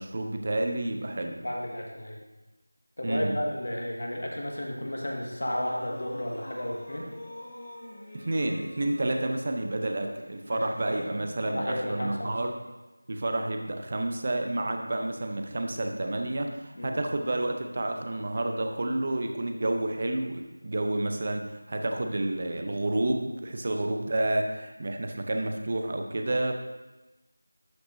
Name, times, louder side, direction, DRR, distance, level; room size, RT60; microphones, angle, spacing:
voice 1, 0.0-1.4 3.0-3.4 8.1-12.5 13.1-26.5, right 1 dB, 35° right, 4 dB, 0.6 m, -30 dB
voice 2, 1.3-2.2 3.0-7.1 10.5-11.2 11.5-12.4 16.8-17.0 23.7-24.0, left 1 dB, 70° left, -1 dB, 1.7 m, -33 dB
sound 1, 5.4-11.0, left 1 dB, 10° left, 2.7 m, -45 dB
11.5 x 5.8 x 2.7 m, 1.1 s
figure-of-eight pair, 175°, 0 cm